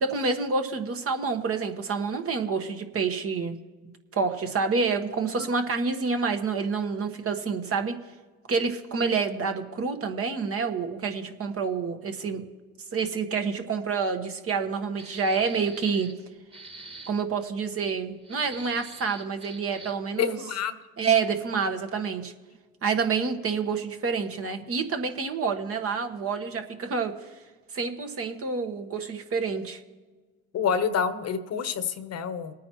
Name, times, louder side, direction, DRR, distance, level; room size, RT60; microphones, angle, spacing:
voice 1, 0.0-3.6 4.1-8.0 8.5-12.5 12.9-16.1 17.1-20.4 21.0-22.3 22.8-27.1 27.7-29.8, right 5 dB, 40° right, 6 dB, 1.4 m, -28 dB
sound 1, 15.0-16.2 16.5-17.1 18.2-20.1, right 2 dB, 15° right, 1.7 m, -45 dB
voice 2, 20.2-20.8 25.4-25.5 30.5-32.5, left 7 dB, 50° left, 11 dB, 1.1 m, -28 dB
21.0 x 9.4 x 3.1 m, 1.3 s
supercardioid pair, 85°, 34 cm